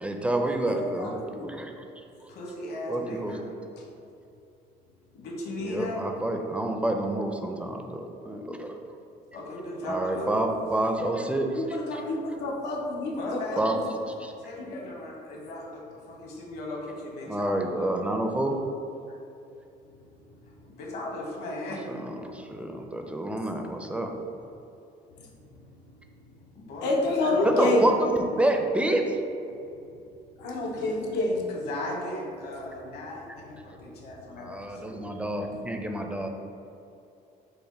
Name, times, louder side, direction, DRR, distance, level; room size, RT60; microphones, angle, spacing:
voice 1, 0.0-1.2 1.4-1.7 2.9-3.4 5.6-8.7 9.9-12.0 13.6-13.8 14.2-14.3 17.3-18.6 21.9-24.1 27.4-29.0 34.4-36.3, right 1 dB, 5° right, 3 dB, 0.4 m, -28 dB
voice 2, 0.7-1.5 11.6-13.6 14.6-14.8 26.8-27.8 30.4-31.4, left 2 dB, 85° left, -1 dB, 0.7 m, -28 dB
voice 3, 2.3-3.5 5.1-6.0 9.3-10.4 13.1-13.6 14.4-15.8 16.1-17.9 20.6-21.8 26.5-28.1 30.7-30.9 31.5-35.2, left 1 dB, 65° left, -2 dB, 1.1 m, -37 dB
5.5 x 2.1 x 4.2 m, 2.7 s
cardioid pair, 110°, 17 cm